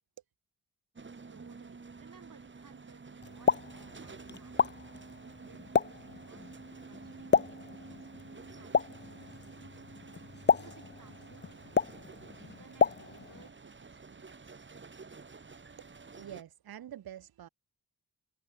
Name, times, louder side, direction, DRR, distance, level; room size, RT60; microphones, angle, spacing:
School Bus, 1.0-16.4, right 4 dB, 30° right, 2.1 m, -50 dB
voice 1, 1.3-4.8 5.2-9.7 10.5-12.0 12.4-14.6, right 6 dB, 60° right, 5.7 m, -60 dB
Explosion, 3.2-13.5, left 5 dB, 30° left, 0.7 m, -32 dB
voice 2, 15.8-17.5, right 11 dB, 85° right, 0.9 m, -47 dB
wide cardioid pair, 135°, 36 cm